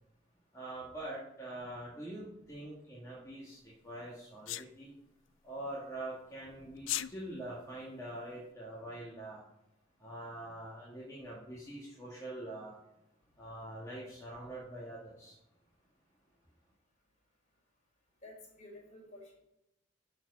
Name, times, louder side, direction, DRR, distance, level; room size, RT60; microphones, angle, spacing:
voice 1, 0.5-4.9 5.4-9.4 10.0-12.8 13.4-15.4, right 1 dB, 15° left, -6 dB, 1.9 m, -44 dB
Sneeze, 4.5-4.7 6.8-7.1, left 15 dB, 70° left, 0.4 m, -35 dB
voice 2, 18.2-19.3, left 1 dB, 40° left, -2 dB, 3.9 m, -52 dB
11.5 x 4.7 x 5.5 m, 0.89 s
head